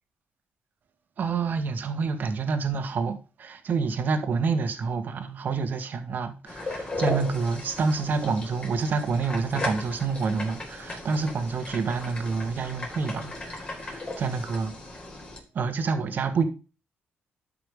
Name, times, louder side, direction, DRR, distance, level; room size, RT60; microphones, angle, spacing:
voice 1, 1.2-14.7 15.5-16.4, right 5 dB, 60° right, 1.8 m, -28 dB
sound 1, 6.5-15.4, left 2 dB, 30° left, 4.3 m, -36 dB
12.0 x 5.9 x 4.9 m
cardioid pair, 90°, 4 cm